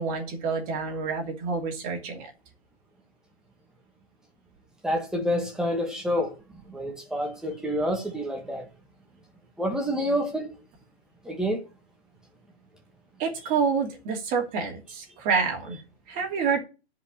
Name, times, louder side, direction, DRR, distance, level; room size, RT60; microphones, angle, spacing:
voice 1, 0.0-2.3 13.2-16.6, right 5 dB, 25° right, 2.9 m, -28 dB
voice 2, 4.8-6.3 6.7-8.6 9.6-10.5 11.3-11.6, equal, ahead, 1.8 m, -28 dB
10.0 x 5.3 x 7.5 m
hypercardioid pair, 140°, 32 cm